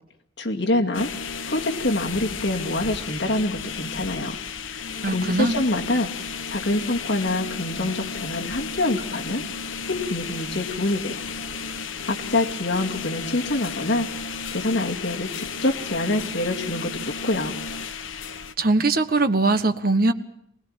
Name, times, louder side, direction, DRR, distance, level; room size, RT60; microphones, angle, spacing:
voice 1, 0.4-1.1 1.5-4.4 4.7-4.9 5.1-9.4 9.9-11.2 12.1-14.1 14.5-17.5, left 2 dB, 65° left, 1 dB, 2.4 m, -26 dB
sound 1, 0.9-18.5, left 5 dB, 80° left, 1.1 m, -33 dB
voice 2, 5.0-5.6 18.6-20.1, right 2 dB, 50° right, 9 dB, 1.4 m, -21 dB
24.0 x 18.5 x 9.0 m, 0.73 s
head